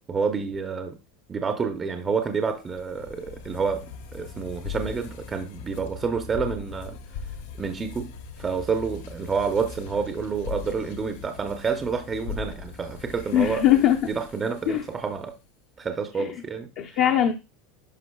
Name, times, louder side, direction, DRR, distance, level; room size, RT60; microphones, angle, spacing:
voice 1, 0.1-1.0 1.3-7.0 7.6-8.1 8.4-13.7 14.1-15.4 15.8-16.7, right 5 dB, 15° right, 0.6 m, -28 dB
sound 1, 1.9-15.3, left 6 dB, 85° left, 1.4 m, -40 dB
voice 2, 13.3-14.0 14.7-14.8 16.2-16.3 16.8-17.3, left 11 dB, 45° left, 0.7 m, -20 dB
11.5 x 5.2 x 2.3 m
supercardioid pair, 165°, 0 cm